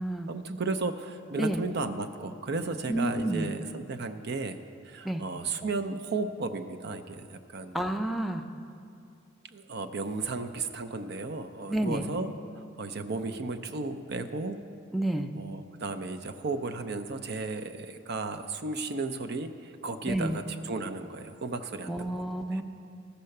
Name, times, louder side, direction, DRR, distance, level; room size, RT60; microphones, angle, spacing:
voice 1, 0.3-4.6 4.8-7.8 9.5-12.3 12.8-14.6 15.4-22.6, right 3 dB, 55° right, 10 dB, 0.5 m, -34 dB
voice 2, 2.9-3.5 5.0-5.2 7.7-8.4 11.7-12.1 14.9-15.3 20.1-20.4 21.9-22.6, right 1 dB, ahead, 6 dB, 0.4 m, -29 dB
13.5 x 5.7 x 6.5 m, 2.5 s
head